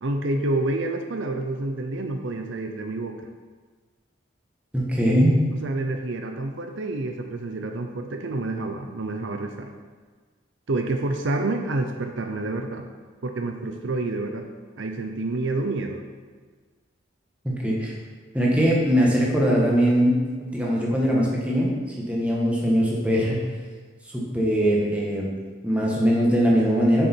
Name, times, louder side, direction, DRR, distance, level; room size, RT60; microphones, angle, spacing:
voice 1, 0.0-3.2 5.6-9.7 10.7-12.9 13.2-14.5 14.7-16.0, right 2 dB, 70° right, 4 dB, 0.6 m, -28 dB
voice 2, 4.7-5.4 17.4-17.9 18.3-20.1 20.4-21.7 22.1-23.4 24.1-25.3 25.6-27.1, equal, 5° right, -4 dB, 1.4 m, -21 dB
7.3 x 6.5 x 4.5 m, 1.5 s
head